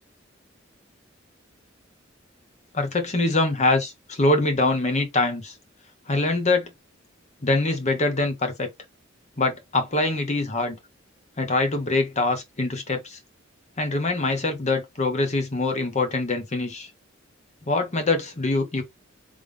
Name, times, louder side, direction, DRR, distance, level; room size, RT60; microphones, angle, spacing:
voice 1, 2.7-5.5 6.1-6.7 7.4-8.7 9.4-10.8 11.4-13.2 13.8-16.9 17.7-18.8, left 2 dB, 35° left, 1.1 m, -24 dB
3.6 x 3.5 x 3.3 m
head